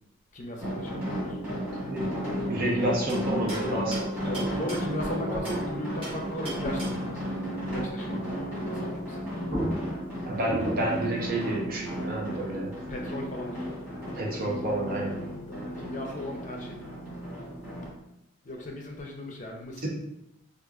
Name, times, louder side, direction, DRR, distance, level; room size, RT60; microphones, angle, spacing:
voice 1, 0.3-1.4 4.3-9.2 12.9-14.0 15.5-16.8 18.4-19.9, left 1 dB, 35° left, 1 dB, 0.6 m, -37 dB
sound 1, 0.6-17.9, equal, 5° right, 1.5 m, -34 dB
voice 2, 2.5-4.6 5.3-5.4 10.2-12.7 14.1-15.2 19.8-19.9, right 1 dB, 45° right, -1 dB, 0.7 m, -30 dB
sound 2, 3.1-5.7 6.0-7.2 9.1-9.2 9.5-11.1, right 1 dB, 25° right, 1.3 m, -36 dB
4.2 x 2.5 x 2.4 m, 0.83 s
head